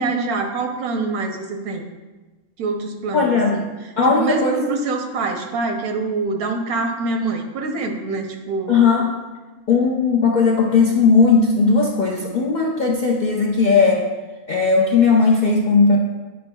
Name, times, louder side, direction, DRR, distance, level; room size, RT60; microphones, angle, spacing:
voice 1, 0.0-1.9 2.6-3.6 4.0-8.7, right 3 dB, 85° right, 4 dB, 1.2 m, -25 dB
voice 2, 3.1-3.6 4.0-4.6 8.7-9.0 9.7-14.0 14.5-16.0, left 4 dB, 60° left, -2 dB, 0.4 m, -17 dB
8.7 x 5.3 x 2.2 m, 1.2 s
omnidirectional pair, 1.5 m